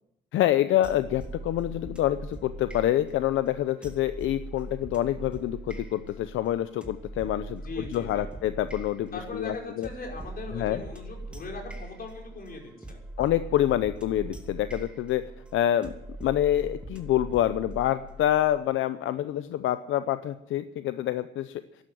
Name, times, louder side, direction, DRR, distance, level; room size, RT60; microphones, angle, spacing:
voice 1, 0.3-9.9 10.5-10.8 13.2-15.2 15.5-15.9 16.2-21.6, left 12 dB, 80° left, 12 dB, 0.7 m, -27 dB
sound 1, 0.8-18.6, right 2 dB, 5° right, 2.8 m, -41 dB
voice 2, 7.6-8.3 9.1-13.0, left 3 dB, 50° left, 1 dB, 5.2 m, -39 dB
12.5 x 11.5 x 9.1 m, 0.88 s
cardioid pair, 90°, 20 cm